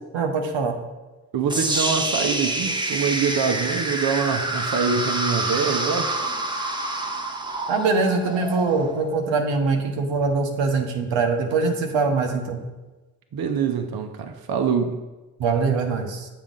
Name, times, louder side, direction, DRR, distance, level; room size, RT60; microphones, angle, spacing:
voice 1, 0.1-0.8 7.7-12.6 15.4-16.3, right 4 dB, 80° right, 2 dB, 0.9 m, -23 dB
voice 2, 1.3-6.1 13.3-15.0, right 6 dB, 55° right, 5 dB, 0.8 m, -24 dB
sound 1, 1.5-9.6, right 2 dB, 10° right, 0.8 m, -27 dB
7.3 x 4.8 x 3.9 m, 1.2 s
supercardioid pair, 45°, 44 cm